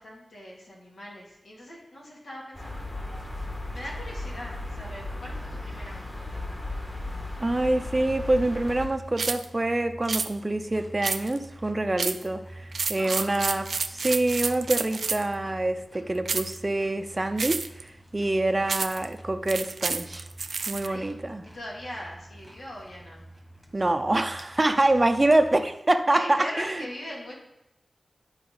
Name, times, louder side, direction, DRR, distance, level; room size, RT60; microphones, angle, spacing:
voice 1, 0.0-3.2 3.7-6.5 12.9-13.4 20.8-21.1 21.5-23.2 24.6-24.9 26.1-27.3, equal, 85° left, -4 dB, 2.4 m, -40 dB
sound 1, 2.5-8.9, left 2 dB, 25° left, 1.5 m, -36 dB
voice 2, 7.4-20.3 20.7-21.5 23.7-26.8, right 2 dB, 30° right, 7 dB, 0.5 m, -26 dB
sound 2, 8.0-25.7, right 1 dB, 10° left, 1.5 m, -47 dB
sound 3, 9.2-9.5 10.1-10.3 11.0-11.4 12.0-12.3 12.7-15.3 16.2-16.6 17.4-17.8 18.7-19.0 19.5-20.9, right 4 dB, 85° right, 0.4 m, -30 dB
11.0 x 4.8 x 3.9 m, 0.87 s
wide cardioid pair, 70°, 0 cm